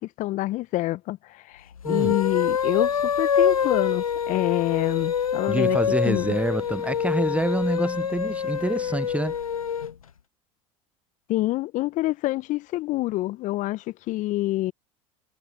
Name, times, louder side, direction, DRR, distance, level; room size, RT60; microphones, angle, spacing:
voice 1, 0.2-5.8 6.0-6.4 11.3-14.7, left 17 dB, 45° left, 0.8 m, -27 dB
sound 1, 1.8-9.9, left 7 dB, 90° left, 0.7 m, -25 dB
voice 2, 1.8-2.2 5.5-9.4, right 2 dB, 5° right, 0.5 m, -27 dB
sound 2, 2.6-8.1, left 5 dB, 20° left, 7.4 m, -53 dB
hypercardioid pair, 75°, 17 cm